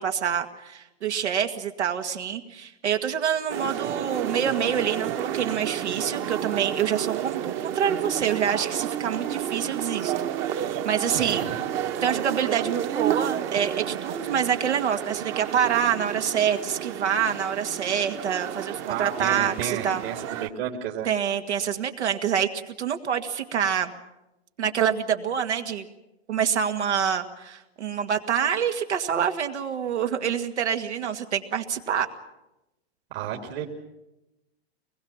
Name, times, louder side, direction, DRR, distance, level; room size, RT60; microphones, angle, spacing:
voice 1, 0.0-10.1 10.5-11.4 12.0-20.0 21.0-22.5 22.8-23.9 24.6-25.9 26.3-32.1, right 8 dB, 90° right, 6 dB, 2.1 m, -26 dB
sound 1, 3.5-20.5, right 10 dB, 35° right, 1.2 m, -31 dB
voice 2, 11.1-11.6 18.9-21.1 33.1-33.6, right 9 dB, 60° right, 0 dB, 3.0 m, -31 dB
24.0 x 21.0 x 7.3 m, 0.96 s
hypercardioid pair, 120°, 33 cm